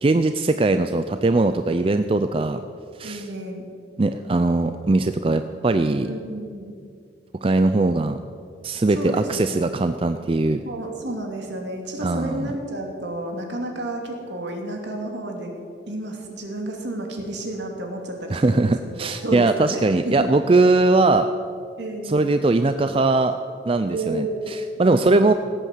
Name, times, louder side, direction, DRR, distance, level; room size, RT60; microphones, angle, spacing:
voice 1, 0.0-2.6 3.0-3.3 4.0-6.1 7.4-8.2 8.6-10.6 12.0-12.5 18.3-21.3 22.0-23.4 23.7-25.3, right 2 dB, 30° right, 9 dB, 0.4 m, -20 dB
voice 2, 1.8-2.3 3.0-3.6 6.0-6.7 8.9-9.8 10.6-15.5 15.9-20.4 21.8-22.3 23.9-24.4 24.9-25.3, right 1 dB, 70° right, 2 dB, 2.5 m, -31 dB
17.5 x 8.4 x 7.3 m, 2.3 s
head